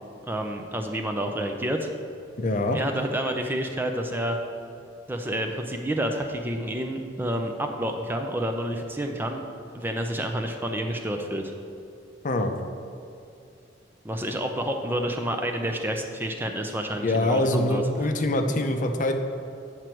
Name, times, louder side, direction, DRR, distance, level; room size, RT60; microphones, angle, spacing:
voice 1, 0.3-1.9 2.7-4.4 5.1-9.4 9.7-11.5 14.0-17.8, right 1 dB, 10° right, 4 dB, 0.5 m, -29 dB
voice 2, 2.4-2.8 12.2-12.5 17.0-19.1, left 1 dB, 45° left, 5 dB, 0.6 m, -24 dB
9.3 x 6.2 x 4.5 m, 2.5 s
head